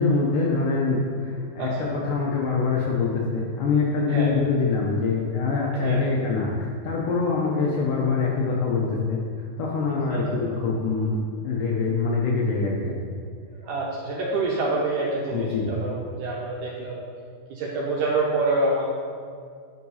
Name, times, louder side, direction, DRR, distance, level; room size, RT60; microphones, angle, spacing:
voice 1, 0.0-6.5 6.8-9.2 9.6-11.2 11.4-13.0 15.3-15.7, left 4 dB, 75° left, -2 dB, 2.0 m, -24 dB
voice 2, 1.6-1.9 4.1-4.4 5.7-6.0 10.1-10.2 13.6-17.1 17.5-18.9, right 2 dB, 80° right, -4 dB, 1.9 m, -27 dB
9.4 x 5.8 x 4.2 m, 2.2 s
omnidirectional pair, 4.6 m